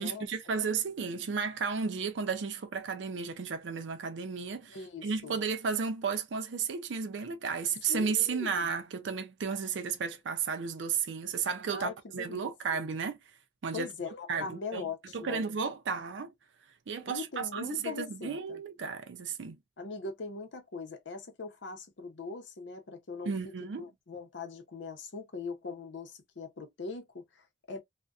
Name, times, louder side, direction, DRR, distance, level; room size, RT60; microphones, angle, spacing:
voice 1, 0.0-4.8 5.0-13.2 13.6-13.9 14.3-14.9 15.1-16.3 16.9-19.6 23.2-23.8, right 5 dB, 80° right, 0.5 m, -33 dB
voice 2, 4.7-5.4 7.9-8.7 11.7-12.9 13.7-15.4 17.1-18.6 19.8-23.3 23.8-27.8, left 4 dB, 80° left, 0.7 m, -41 dB
2.5 x 2.1 x 2.3 m
head